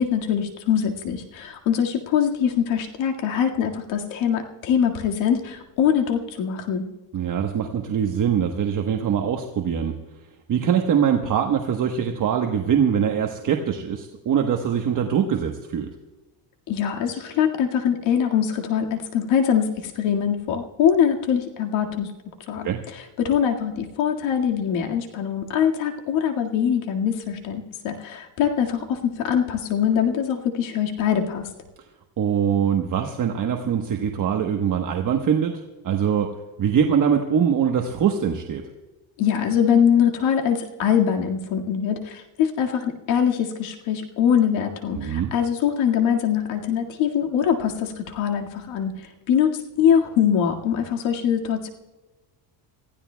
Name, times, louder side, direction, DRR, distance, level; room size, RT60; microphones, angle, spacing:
voice 1, 0.0-6.8 16.7-22.1 22.5-31.5 39.2-48.9 49.3-51.7, left 8 dB, 85° left, 2 dB, 2.0 m, -23 dB
voice 2, 7.1-9.9 10.5-15.9 22.6-22.8 32.2-36.3 36.6-38.6 44.9-45.3, right 8 dB, 45° right, 3 dB, 1.2 m, -23 dB
26.5 x 15.5 x 2.3 m, 1.2 s
cardioid pair, 130°, 45 cm